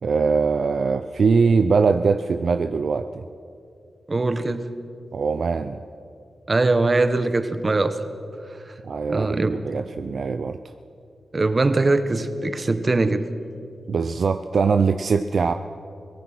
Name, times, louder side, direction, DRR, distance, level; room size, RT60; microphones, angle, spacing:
voice 1, 0.0-3.2 5.1-5.8 8.8-10.6 13.9-15.5, right 5 dB, 70° right, 9 dB, 0.6 m, -22 dB
voice 2, 4.1-4.7 6.5-8.0 9.1-9.6 11.3-13.2, right 2 dB, 40° right, 10 dB, 1.4 m, -21 dB
24.0 x 17.5 x 6.2 m, 2.5 s
cardioid pair, 50°, 0 cm